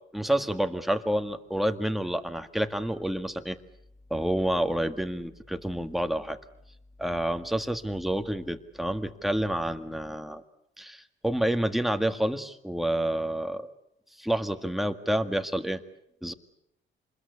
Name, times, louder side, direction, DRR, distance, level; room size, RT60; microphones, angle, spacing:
voice 1, 0.1-3.6 4.1-6.4 7.0-10.4 10.8-13.7 14.2-15.8 16.2-16.3, right 1 dB, ahead, 8 dB, 1.8 m, -28 dB
27.0 x 21.0 x 8.3 m, 0.80 s
cardioid pair, 90°, 20 cm